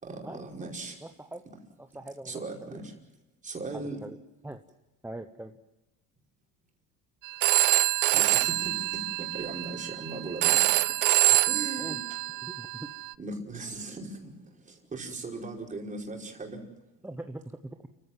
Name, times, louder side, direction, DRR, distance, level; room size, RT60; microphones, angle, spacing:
voice 1, 0.0-1.0 2.2-2.9 3.4-4.0 8.1-10.7 11.5-12.0 13.2-16.6, right 3 dB, 20° right, 0 dB, 5.1 m, -38 dB
voice 2, 1.0-1.4 1.8-2.4 4.0-4.2 4.4-4.6 5.0-5.5 11.8-12.0 12.4-12.9 17.0-17.8, right 1 dB, 5° right, 5 dB, 1.0 m, -41 dB
Telephone, 7.2-13.1, right 19 dB, 65° right, 0.7 m, -26 dB
29.5 x 16.0 x 7.5 m, 1.1 s
cardioid pair, 135°, 35 cm